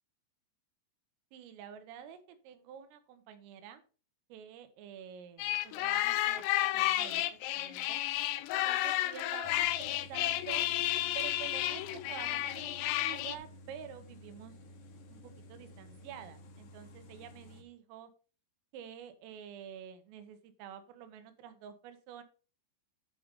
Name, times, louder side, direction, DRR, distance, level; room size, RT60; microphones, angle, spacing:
voice 1, 1.3-3.8 4.3-6.4 6.7-8.0 8.5-10.7 11.2-14.6 15.1-15.2 15.5-18.1 18.7-22.2, right 9 dB, 90° right, 9 dB, 3.8 m, -48 dB
sound 1, 5.4-13.4, left 15 dB, 90° left, 2.5 m, -32 dB
sound 2, 9.4-17.6, left 1 dB, 70° left, 1.9 m, -53 dB
10.5 x 5.2 x 5.3 m, 0.37 s
omnidirectional pair, 5.7 m